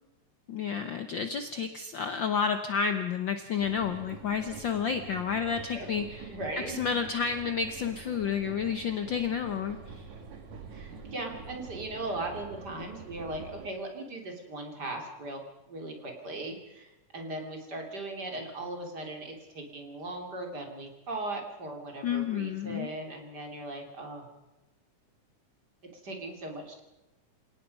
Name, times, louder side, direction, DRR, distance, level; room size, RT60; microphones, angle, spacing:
voice 1, 0.5-6.3 6.7-10.0 22.0-22.9, left 6 dB, 80° left, 8 dB, 1.0 m, -30 dB
sound 1, 3.6-13.7, right 4 dB, 65° right, 3.5 m, -46 dB
voice 2, 5.7-6.9 10.7-15.4 15.7-24.3 26.0-26.8, right 2 dB, 35° right, 2 dB, 3.3 m, -38 dB
28.5 x 17.5 x 5.4 m, 1.0 s
omnidirectional pair, 3.5 m